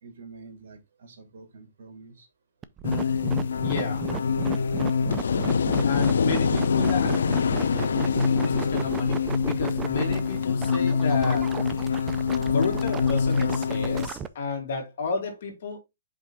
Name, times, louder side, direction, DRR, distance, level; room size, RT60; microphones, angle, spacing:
voice 1, 0.0-2.3, right 4 dB, 65° right, 2.3 m, -47 dB
sound 1, 2.6-14.3, right 9 dB, 15° right, 0.3 m, -35 dB
sound 2, 2.8-14.1, left 6 dB, 85° left, 0.6 m, -25 dB
voice 2, 3.6-4.1 5.8-7.3 7.6-11.5 12.5-15.8, left 4 dB, 55° left, 2.2 m, -31 dB
5.1 x 3.5 x 5.7 m
hypercardioid pair, 165°, 0 cm